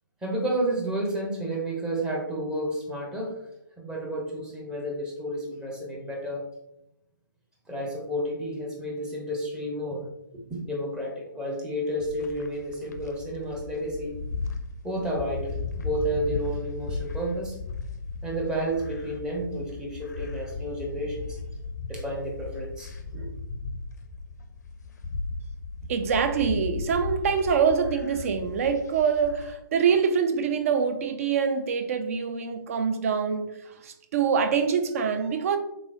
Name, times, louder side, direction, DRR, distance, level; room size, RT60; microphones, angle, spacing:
voice 1, 0.2-3.3 3.8-6.5 7.7-10.0 10.5-14.2 14.8-17.6 18.2-21.2 21.9-23.3, right 1 dB, 5° right, 0.7 m, -31 dB
sound 1, 12.0-29.6, left 4 dB, 50° left, 0.5 m, -36 dB
voice 2, 25.9-35.6, right 6 dB, 40° right, 0.4 m, -25 dB
3.8 x 3.1 x 2.5 m
figure-of-eight pair, 130°, 11 cm